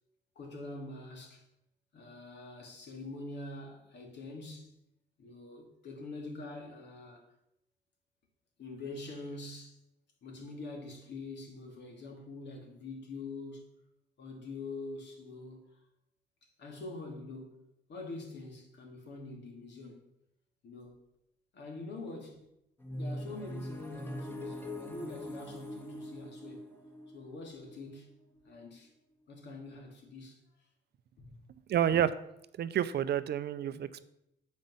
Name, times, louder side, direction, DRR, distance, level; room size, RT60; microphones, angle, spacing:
voice 1, 0.4-1.4 1.9-4.8 5.2-7.2 8.6-9.8 10.2-13.7 14.2-15.8 16.6-17.5 17.9-20.0 20.6-21.0 21.5-22.5 22.9-26.6 27.1-28.1 28.4-28.9 29.3-30.4 31.2-31.4, left 2 dB, 65° left, 2.4 m, -45 dB
sound 1, 22.8-28.6, left 1 dB, 10° left, 1.5 m, -42 dB
voice 2, 31.7-32.1 32.6-34.1, right 10 dB, 60° right, 0.5 m, -29 dB
7.5 x 5.3 x 5.5 m
supercardioid pair, 70°, 19 cm